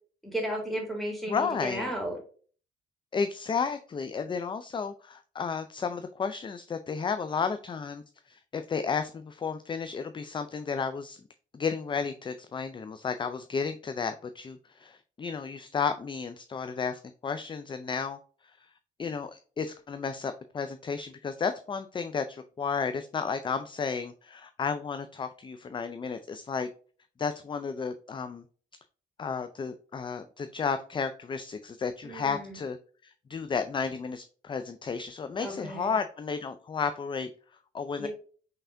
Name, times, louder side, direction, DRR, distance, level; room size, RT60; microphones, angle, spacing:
voice 1, 0.2-2.2 32.0-32.6 35.4-35.9 38.0-38.1, right 1 dB, ahead, 0 dB, 2.3 m, -34 dB
voice 2, 1.3-1.9 3.1-11.2 11.5-18.2 19.0-26.7 27.2-28.4 29.2-32.8 33.0-37.3 37.7-38.1, left 5 dB, 25° left, 9 dB, 0.4 m, -33 dB
5.6 x 3.3 x 2.6 m, 0.42 s
cardioid pair, 90°, 20 cm